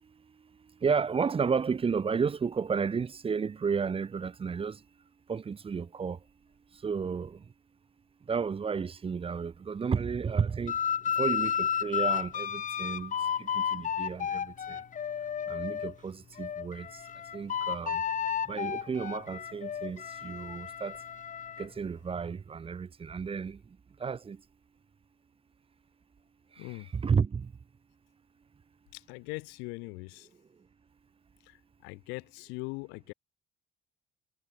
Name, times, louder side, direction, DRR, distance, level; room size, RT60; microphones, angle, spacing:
voice 1, 0.8-4.7 5.3-6.2 6.8-7.3 8.3-10.7 11.2-13.1 13.7-14.4 15.5-16.9 17.3-18.0 18.5-20.9 21.6-23.6 24.0-24.4 26.9-27.4, right 6 dB, 35° right, 1.0 m, -32 dB
sound 1, 10.7-15.9 16.4-21.7, left 8 dB, 50° left, 2.0 m, -32 dB
voice 2, 28.9-30.3 31.8-33.1, left 30 dB, 85° left, 2.6 m, -40 dB
supercardioid pair, 70°, 17 cm